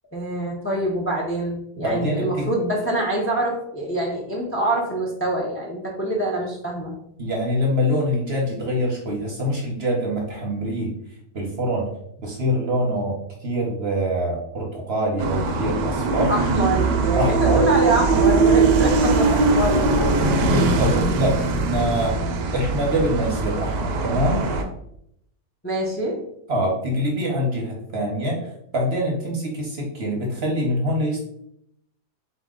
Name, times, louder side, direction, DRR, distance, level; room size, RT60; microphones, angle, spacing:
voice 1, 0.1-6.9 16.3-20.1 25.6-26.2, right 1 dB, 20° left, -2 dB, 0.3 m, -25 dB
voice 2, 1.8-2.5 7.2-10.9 11.3-11.9 12.2-16.3 17.1-17.6 20.4-22.2 22.5-24.4 26.5-31.2, equal, 50° right, -1 dB, 0.9 m, -24 dB
sound 1, 15.2-24.6, right 3 dB, 80° right, 1.2 m, -21 dB
4.1 x 3.0 x 3.7 m, 0.74 s
omnidirectional pair, 1.8 m